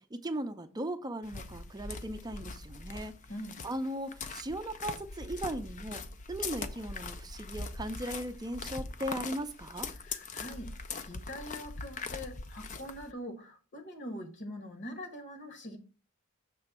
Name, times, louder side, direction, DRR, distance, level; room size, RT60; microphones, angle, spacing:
voice 1, 0.0-3.2 3.6-6.0 6.3-9.9, right 1 dB, 20° right, 0.5 m, -38 dB
sound 1, 1.2-13.1, left 4 dB, 35° left, 0.5 m, -41 dB
voice 2, 3.3-3.7 9.9-10.7 11.0-15.8, left 1 dB, 55° left, 1.3 m, -43 dB
6.9 x 3.2 x 5.9 m
head